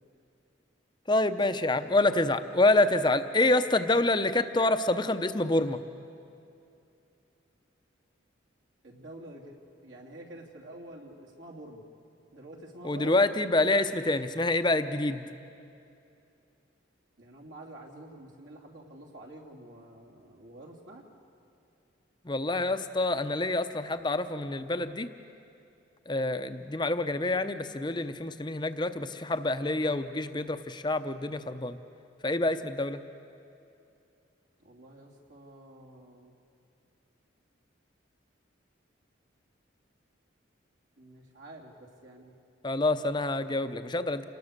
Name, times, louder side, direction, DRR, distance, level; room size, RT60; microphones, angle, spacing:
voice 1, 1.1-5.8 12.8-15.2 22.2-25.1 26.1-31.8 32.2-33.0 42.6-44.2, left 2 dB, 25° left, 10 dB, 0.7 m, -27 dB
voice 2, 8.8-11.8 12.3-13.2 17.2-21.0 28.1-28.3 34.6-36.3 41.0-42.3, right 1 dB, 75° right, -2 dB, 3.1 m, -48 dB
28.5 x 19.5 x 6.7 m, 2.6 s
head